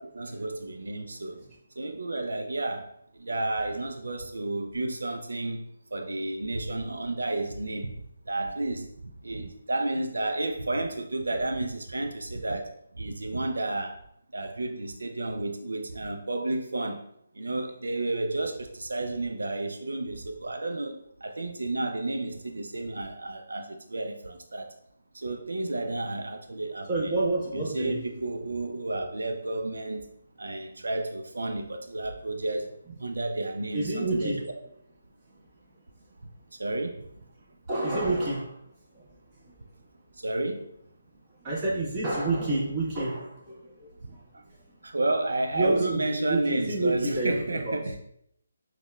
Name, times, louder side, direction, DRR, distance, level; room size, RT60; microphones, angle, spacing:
voice 1, 0.0-1.4 1.8-2.9 3.2-5.7 5.9-8.0 8.3-8.9 9.2-14.0 14.3-17.0 17.4-24.7 25.1-27.2 27.5-30.1 30.4-32.7 33.0-34.5 36.6-37.0 40.1-40.7 44.8-48.0, right 2 dB, 85° right, 0.3 m, -31 dB
voice 2, 26.9-28.0 33.7-34.4 37.7-38.5 38.9-39.0 41.4-44.2 45.5-47.8, right 2 dB, 25° right, 1.3 m, -28 dB
5.2 x 2.1 x 2.3 m
figure-of-eight pair, 155°, 0 cm